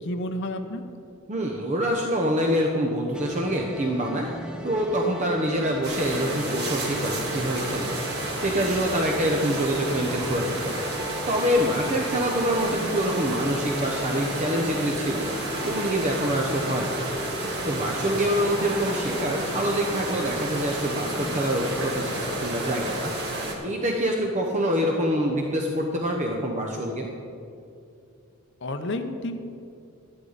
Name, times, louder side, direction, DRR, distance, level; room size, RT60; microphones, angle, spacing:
voice 1, 0.0-0.8 28.6-29.4, left 1 dB, 55° left, 7 dB, 0.8 m, -30 dB
voice 2, 1.3-4.3 4.6-10.7 11.3-17.0 17.6-27.1, equal, 30° right, 1 dB, 0.8 m, -26 dB
sound 1, 3.1-21.9, right 1 dB, 5° right, 0.6 m, -38 dB
sound 2, 5.8-23.5, right 1 dB, 50° right, 2.0 m, -31 dB
13.0 x 11.5 x 4.0 m, 2.5 s
head